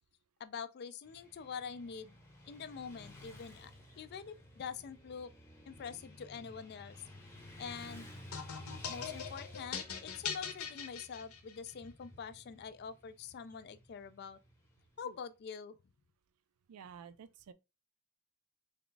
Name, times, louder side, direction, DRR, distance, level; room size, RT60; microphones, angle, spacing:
voice 1, 0.4-2.2 2.5-5.3 5.7-7.0 7.6-8.1 8.9-14.4 15.0-15.8, left 6 dB, 50° left, 0.3 m, -45 dB
Motorcycle / Traffic noise roadway noise, 1.0-15.1, left 1 dB, 10° left, 0.8 m, -54 dB
sound 1, 8.3-11.7, left 7 dB, 75° left, 0.7 m, -41 dB
voice 2, 16.7-17.5, right 7 dB, 80° right, 0.4 m, -51 dB
3.5 x 2.3 x 3.8 m
head